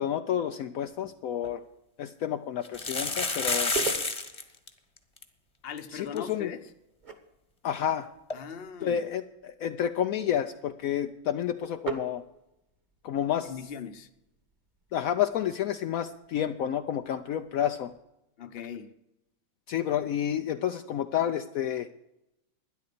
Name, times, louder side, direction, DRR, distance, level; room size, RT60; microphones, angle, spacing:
voice 1, 0.0-1.6 2.0-3.7 5.9-6.5 7.6-8.1 8.8-12.2 13.0-13.5 14.9-17.9 19.7-21.9, left 10 dB, 80° left, 0.7 m, -30 dB
sound 1, 1.0-1.1 1.4-1.5 2.6-4.4 4.7-4.8 5.0-5.2 5.8-5.9 6.2-6.3 8.3-8.4, left 3 dB, 20° left, 1.0 m, -29 dB
sound 2, 3.6-18.0, right 5 dB, 25° right, 1.3 m, -44 dB
voice 2, 5.6-6.6 8.3-9.0 13.4-14.1 18.4-18.9, left 7 dB, 45° left, 0.8 m, -39 dB
12.5 x 10.5 x 6.8 m
omnidirectional pair, 2.1 m